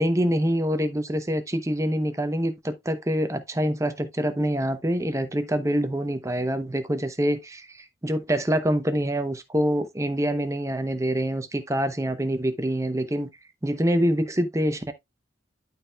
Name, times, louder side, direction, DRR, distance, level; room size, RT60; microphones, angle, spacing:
voice 1, 0.0-13.3 13.6-14.9, equal, 15° right, 0.7 m, -25 dB
12.5 x 4.4 x 2.3 m
head